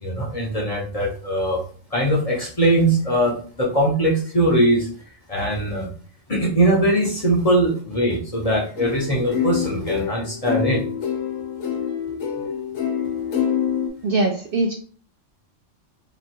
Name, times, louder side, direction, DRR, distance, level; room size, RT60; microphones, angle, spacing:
voice 1, 0.0-1.6 1.9-4.9 5.3-5.9 6.3-10.8, right 1 dB, 35° left, -2 dB, 0.8 m, -21 dB
sound 1, 8.8-13.9, left 8 dB, 85° left, 1.1 m, -26 dB
voice 2, 14.0-14.7, right 2 dB, 60° right, 2 dB, 0.6 m, -21 dB
3.0 x 2.3 x 4.2 m, 0.43 s
omnidirectional pair, 1.3 m